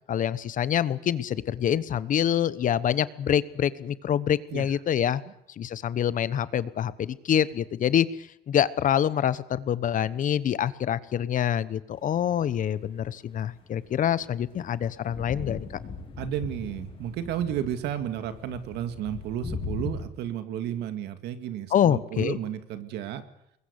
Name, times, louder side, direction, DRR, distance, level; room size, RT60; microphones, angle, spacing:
voice 1, 0.1-5.2 5.6-8.1 8.5-15.7 21.7-22.4, left 9 dB, 50° left, 17 dB, 1.1 m, -26 dB
sound 1, 12.2-12.7 13.6-20.0, left 4 dB, 35° left, 6.7 m, -39 dB
voice 2, 16.2-23.2, right 10 dB, 80° right, 10 dB, 2.2 m, -32 dB
24.5 x 21.5 x 8.2 m, 0.75 s
cardioid pair, 110°, 17 cm